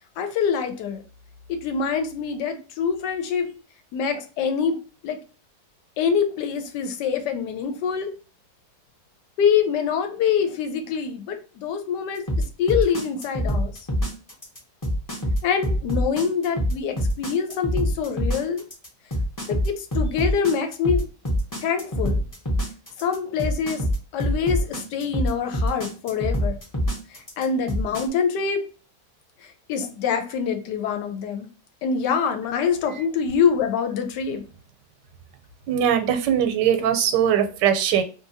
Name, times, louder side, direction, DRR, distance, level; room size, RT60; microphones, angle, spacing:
voice 1, 0.2-1.0 1.5-3.6 3.9-4.7 5.0-5.2 6.0-8.1 9.4-12.3 12.6-13.7 15.4-18.6 19.5-21.0 21.6-22.2 23.0-23.8 24.1-26.6 27.4-28.6 29.7-31.5 31.8-34.4, left 6 dB, 90° left, 1.2 m, -25 dB
sound 1, 12.3-28.0, equal, 20° left, 0.5 m, -25 dB
voice 2, 35.7-38.0, right 9 dB, 85° right, 1.2 m, -21 dB
2.7 x 2.6 x 2.6 m
omnidirectional pair, 1.8 m